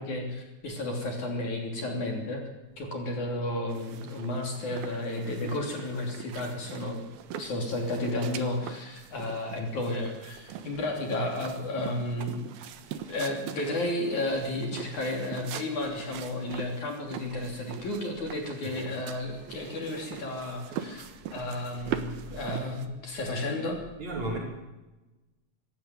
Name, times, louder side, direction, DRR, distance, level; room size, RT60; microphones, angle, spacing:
voice 1, 0.0-2.4 2.8-12.5 13.1-21.1 21.3-23.8, left 1 dB, 50° left, 2 dB, 4.2 m, -32 dB
sound 1, 3.7-22.9, right 9 dB, 70° right, 3.0 m, -42 dB
voice 2, 24.0-24.4, right 2 dB, 45° right, -1 dB, 6.3 m, -34 dB
25.5 x 13.5 x 9.4 m, 1.1 s
omnidirectional pair, 4.8 m